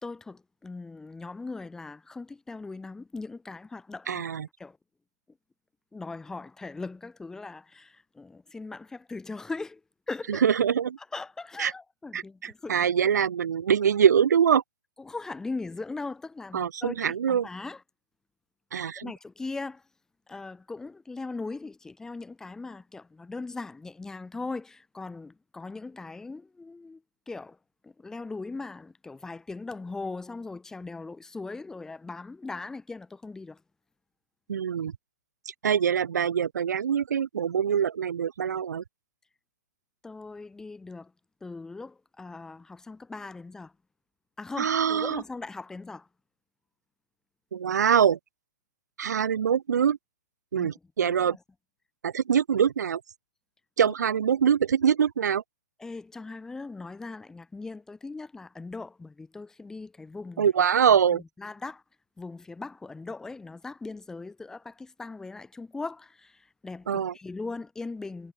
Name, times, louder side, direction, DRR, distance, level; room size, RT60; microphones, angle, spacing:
voice 1, 0.0-4.8 5.9-9.8 10.1-10.4 11.0-12.9 15.0-17.8 19.0-19.8 20.3-27.0 27.3-27.6 27.8-33.6 40.0-41.1 41.4-43.7 44.4-46.1 50.6-50.7 51.0-51.4 53.9-54.0 55.8-60.5 60.8-61.8 62.2-68.3, left 3 dB, 5° left, 1.8 m, -39 dB
voice 2, 4.1-4.5 10.3-11.0 11.6-11.7 12.1-14.6 16.5-17.5 18.7-19.1 34.5-34.9 35.6-38.8 44.6-45.2 47.5-48.2 49.0-50.0 50.5-51.4 52.0-53.0 53.8-55.4 60.4-61.2 66.9-67.1, right 8 dB, 85° right, 0.7 m, -24 dB
hypercardioid pair, 150°, 9 cm